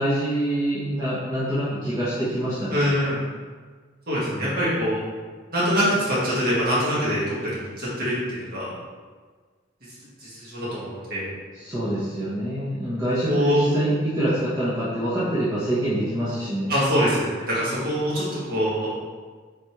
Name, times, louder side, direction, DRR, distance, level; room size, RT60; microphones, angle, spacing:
voice 1, 0.0-2.9 4.3-4.6 11.5-16.7, right 1 dB, 20° right, -10 dB, 1.2 m, -26 dB
voice 2, 2.7-3.2 4.1-5.0 5.5-8.7 10.2-11.3 13.3-13.7 16.7-18.9, equal, 50° right, -8 dB, 1.9 m, -24 dB
8.1 x 4.3 x 3.2 m, 1.5 s
head